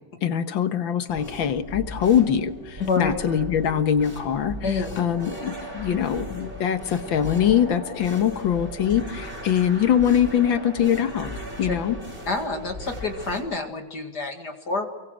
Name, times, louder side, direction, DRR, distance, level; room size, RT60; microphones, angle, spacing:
voice 1, 0.2-11.3 11.6-12.0, left 9 dB, 75° left, 10 dB, 2.0 m, -23 dB
sound 1, 1.1-13.4, equal, 25° right, 5.8 m, -37 dB
voice 2, 2.8-3.1 4.6-4.9 11.7-11.8 12.3-14.9, left 4 dB, 55° left, 4 dB, 2.5 m, -27 dB
30.0 x 23.5 x 6.4 m, 1.2 s
omnidirectional pair, 2.1 m